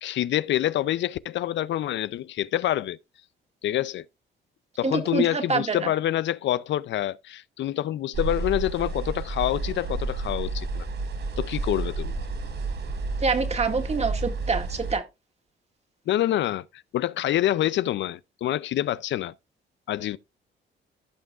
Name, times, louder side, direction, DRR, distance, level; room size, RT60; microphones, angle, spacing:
voice 1, 0.0-3.0 3.6-4.0 4.8-10.9 11.4-12.2 16.1-16.6 16.9-19.3 19.9-20.2, left 13 dB, 65° left, 0.5 m, -26 dB
voice 2, 4.8-5.9 13.2-15.1, right 4 dB, 35° right, 2.0 m, -26 dB
sound 1, 8.1-14.9, right 3 dB, 60° right, 4.3 m, -31 dB
15.5 x 5.9 x 2.4 m
cardioid pair, 90°, 20 cm